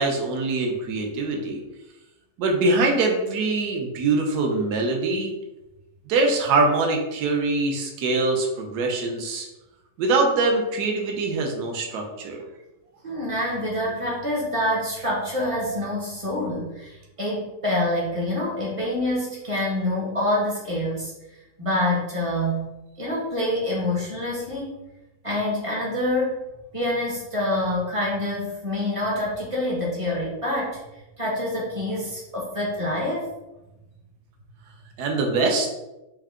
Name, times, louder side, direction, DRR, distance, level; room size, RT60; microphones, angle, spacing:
voice 1, 0.0-1.6 2.4-5.3 6.1-9.5 10.0-12.4 35.0-35.7, right 3 dB, 70° right, 1 dB, 1.2 m, -23 dB
voice 2, 13.0-21.1 21.6-22.7 23.0-24.7 25.2-26.4 26.7-30.8 31.2-33.3, left 1 dB, 30° right, -4 dB, 0.6 m, -26 dB
4.6 x 2.1 x 3.6 m, 0.99 s
omnidirectional pair, 1.9 m